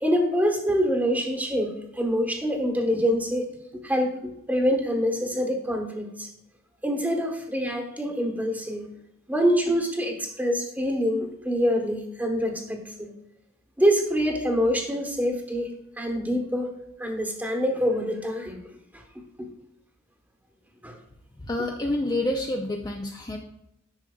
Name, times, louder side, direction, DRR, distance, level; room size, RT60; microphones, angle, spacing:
voice 1, 0.0-3.4 3.7-6.3 6.8-8.9 9.3-13.1 13.8-15.7 16.0-16.7 17.0-18.6 19.4-19.5 20.8-21.0, equal, 10° right, 2 dB, 1.1 m, -25 dB
voice 2, 21.4-23.4, left 1 dB, 20° left, 1 dB, 0.5 m, -28 dB
10.5 x 6.1 x 2.3 m, 0.83 s
head